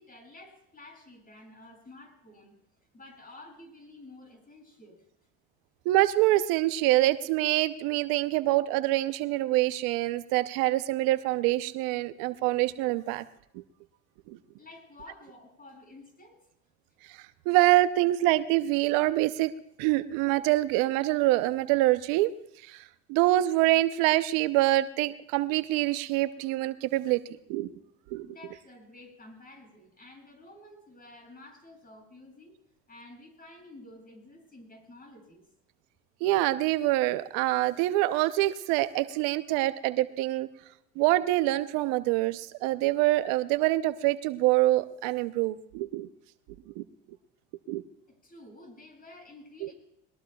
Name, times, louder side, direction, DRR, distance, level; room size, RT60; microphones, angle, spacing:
voice 1, 0.0-2.5 2.9-5.0 14.6-16.4 28.2-32.5 32.9-35.4 48.2-49.7, left 2 dB, 25° left, 2 dB, 7.6 m, -51 dB
voice 2, 5.9-13.2 13.5-13.6 14.3-14.4 17.1-17.2 17.5-19.5 19.8-22.3 22.6-22.8 23.1-27.2 27.5-27.7 28.1-28.3 36.2-40.5 41.0-46.1 46.7-46.8 47.7-47.8 49.6-49.7, right 17 dB, 75° right, 13 dB, 0.8 m, -25 dB
21.5 x 21.0 x 2.3 m, 0.76 s
hypercardioid pair, 80°, 35 cm